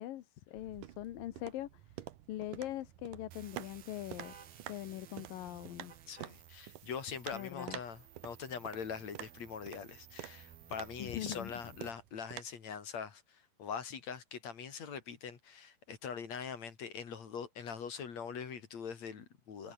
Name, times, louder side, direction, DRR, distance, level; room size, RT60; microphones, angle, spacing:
voice 1, 0.0-1.8 2.3-4.3 4.7-5.9 7.3-7.8 11.0-11.5, left 14 dB, 75° left, 2.9 m, -42 dB
sound 1, 0.6-12.4, right 13 dB, 70° right, 2.7 m, -50 dB
sound 2, 3.3-11.9, right 10 dB, 85° right, 4.0 m, -58 dB
sound 3, 4.2-4.6 5.9-6.3 7.3-7.9, right 5 dB, 35° right, 1.3 m, -55 dB
voice 2, 6.1-19.7, left 6 dB, 50° left, 3.7 m, -43 dB
omnidirectional pair, 4.1 m